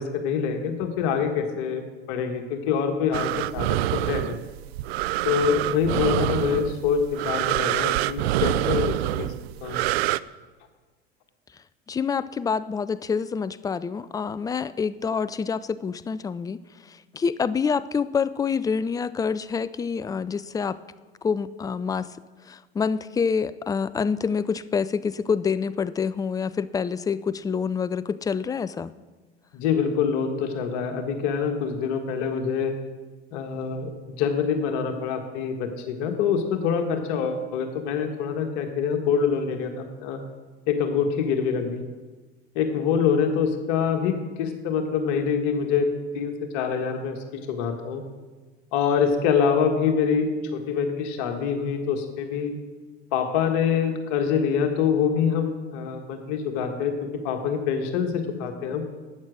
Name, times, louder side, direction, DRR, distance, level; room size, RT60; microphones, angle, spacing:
voice 1, 0.0-1.8 2.1-4.3 5.2-9.3 9.6-9.8 29.5-32.7 33.3-33.9 34.2-40.2 40.7-41.8 42.5-45.9 46.1-47.2 47.5-48.0 48.7-52.5 53.1-56.9 57.2-58.8, left 7 dB, 55° left, 5 dB, 1.5 m, -25 dB
sound 1, 3.1-10.2, right 15 dB, 70° right, 0.5 m, -26 dB
voice 2, 11.9-20.8 21.2-22.1 22.5-28.9, left 6 dB, 10° left, 17 dB, 0.3 m, -27 dB
12.5 x 8.7 x 6.2 m, 1.3 s
figure-of-eight pair, 70°, 33 cm